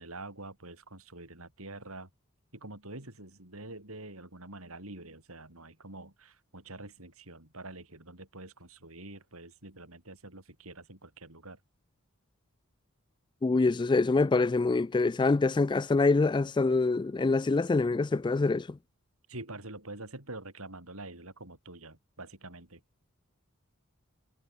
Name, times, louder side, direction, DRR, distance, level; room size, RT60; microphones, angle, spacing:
voice 1, 0.0-2.1 2.5-11.6 19.3-22.8, right 2 dB, 70° right, 6.9 m, -46 dB
voice 2, 13.4-18.8, left 3 dB, 20° left, 0.3 m, -25 dB
head